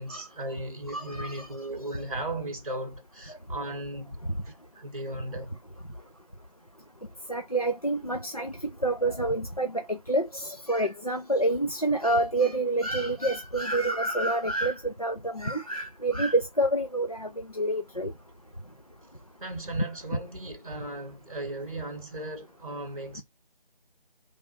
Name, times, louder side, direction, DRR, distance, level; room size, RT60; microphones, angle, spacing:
voice 1, 0.0-4.2 4.4-5.6 17.3-17.4 19.4-23.2, right 1 dB, 35° right, 0.9 m, -37 dB
voice 2, 0.9-1.5 3.3-3.4 7.3-8.5 8.8-18.1, right 1 dB, 40° left, 0.4 m, -28 dB
3.3 x 2.4 x 4.1 m
figure-of-eight pair, 165°, 30 cm